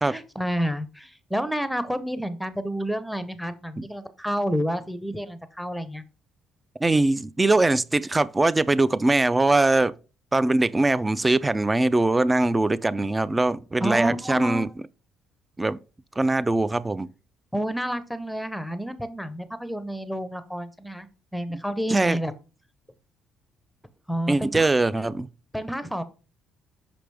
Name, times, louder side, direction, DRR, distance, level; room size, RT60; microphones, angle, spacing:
voice 1, 0.1-6.0 13.8-14.7 17.5-21.1 21.3-22.3 24.1-24.7 25.5-26.0, equal, ahead, 0.8 m, -29 dB
voice 2, 6.8-9.9 10.3-14.7 15.6-15.8 16.2-17.1 21.9-22.2 24.3-25.3, right 2 dB, 15° right, 0.4 m, -22 dB
6.0 x 5.0 x 3.4 m
cardioid pair, 95°, 0 cm